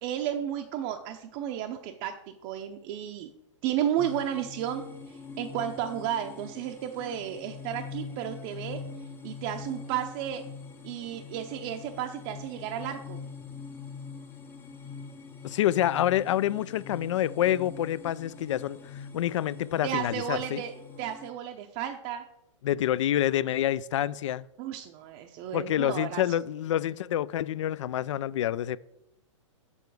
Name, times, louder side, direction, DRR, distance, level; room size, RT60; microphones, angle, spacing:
voice 1, 0.0-2.2 2.4-3.3 3.6-8.8 9.2-10.4 10.8-13.2 19.8-22.2 24.6-26.3, right 10 dB, 35° right, 0.6 m, -33 dB
sound 1, 4.0-21.3, left 5 dB, 15° left, 0.6 m, -43 dB
voice 2, 15.4-20.6 22.6-24.5 25.5-28.8, left 12 dB, 65° left, 0.4 m, -27 dB
7.1 x 6.7 x 4.7 m
hypercardioid pair, 145°, 17 cm